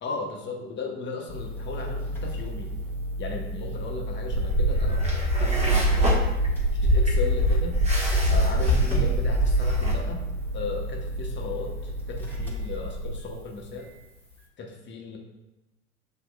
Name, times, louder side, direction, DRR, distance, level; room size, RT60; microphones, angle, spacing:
voice 1, 0.0-2.7 3.2-6.4 6.7-7.8 8.3-10.2 10.5-13.9 14.6-15.2, left 3 dB, 30° left, 0 dB, 1.1 m, -36 dB
sound 1, 1.3-14.4, equal, 5° left, 1.4 m, -32 dB
sound 2, 4.3-9.9, right 1 dB, 20° right, 1.2 m, -23 dB
7.4 x 2.8 x 2.3 m, 1.0 s
figure-of-eight pair, 75°, 37 cm